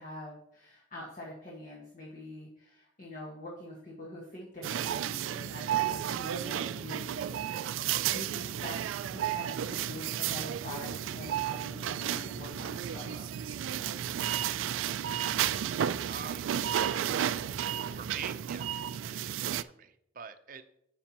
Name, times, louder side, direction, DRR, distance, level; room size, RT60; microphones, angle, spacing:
voice 1, 0.0-8.8 9.1-13.3, left 1 dB, 45° left, -4 dB, 1.6 m, -45 dB
sound 1, 4.6-19.6, right 10 dB, 80° right, 0.3 m, -33 dB
sound 2, 10.4-18.4, equal, ahead, 2.2 m, -53 dB
voice 2, 16.0-16.5 17.9-18.7 19.0-20.6, right 7 dB, 45° right, 9 dB, 0.6 m, -45 dB
9.8 x 6.8 x 2.9 m, 0.75 s
head